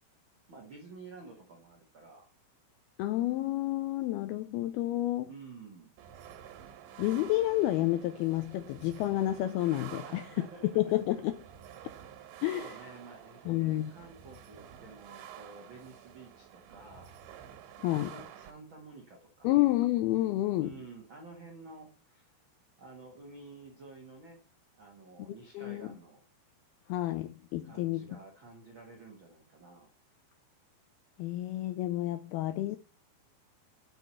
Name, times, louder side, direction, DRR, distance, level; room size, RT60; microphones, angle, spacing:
voice 1, 0.5-2.3 5.2-5.9 10.0-10.8 12.5-17.2 17.9-19.6 20.6-22.3 22.8-24.4 24.8-26.2 27.6-29.9, right 3 dB, 70° right, 1.1 m, -51 dB
voice 2, 3.0-5.3 7.0-11.4 12.4-12.7 13.5-13.9 17.8-18.2 19.4-20.7 25.5-25.9 26.9-28.2 31.2-32.8, left 15 dB, 85° left, 2.2 m, -30 dB
sound 1, 6.0-18.5, right 10 dB, 90° right, 3.5 m, -50 dB
6.8 x 6.1 x 6.8 m
omnidirectional pair, 5.1 m